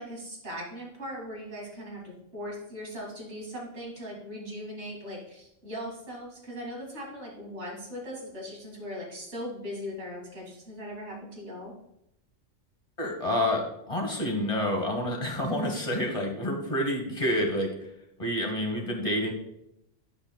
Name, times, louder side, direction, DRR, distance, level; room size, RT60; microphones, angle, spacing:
voice 1, 0.0-11.7, equal, 60° right, -2 dB, 2.4 m, -39 dB
voice 2, 13.0-17.7 18.2-19.3, left 1 dB, 25° left, 1 dB, 1.2 m, -28 dB
10.0 x 5.3 x 2.2 m, 0.80 s
omnidirectional pair, 1.3 m